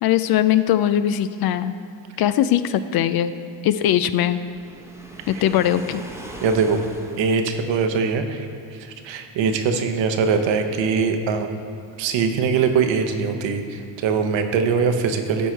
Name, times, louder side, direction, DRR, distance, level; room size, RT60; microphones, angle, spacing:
voice 1, 0.0-1.7 2.2-3.3 3.6-4.4 5.3-6.0, left 11 dB, 50° left, 12 dB, 0.4 m, -20 dB
Waves surf, 4.3-7.8, right 1 dB, 5° right, 1.0 m, -40 dB
voice 2, 6.4-6.8 7.2-8.5 9.0-11.6 12.0-15.5, right 5 dB, 65° right, 6 dB, 1.0 m, -22 dB
12.5 x 4.6 x 4.5 m, 2.4 s
supercardioid pair, 75°, 49 cm